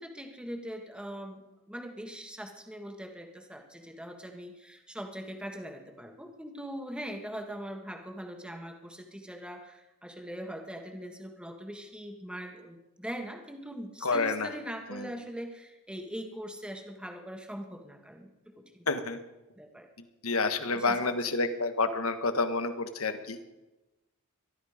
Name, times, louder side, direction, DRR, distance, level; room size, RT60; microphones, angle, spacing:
voice 1, 0.0-18.9 19.6-19.9 20.7-21.1, equal, 5° right, 4 dB, 1.7 m, -41 dB
voice 2, 14.0-14.5 14.9-15.1 18.9-19.2 20.2-23.4, left 3 dB, 70° left, 9 dB, 1.4 m, -29 dB
22.0 x 12.5 x 5.1 m, 1.0 s
head